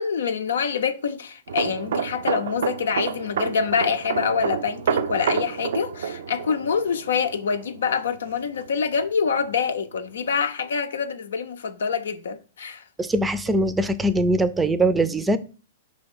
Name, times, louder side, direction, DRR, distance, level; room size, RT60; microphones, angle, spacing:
voice 1, 0.0-12.8, left 6 dB, 75° left, 0.6 m, -26 dB
sound 1, 1.5-9.0 9.3-9.5, right 7 dB, 70° right, 0.4 m, -29 dB
voice 2, 13.0-15.4, right 1 dB, 10° right, 0.5 m, -21 dB
5.2 x 3.4 x 5.5 m
hypercardioid pair, 110°, 0 cm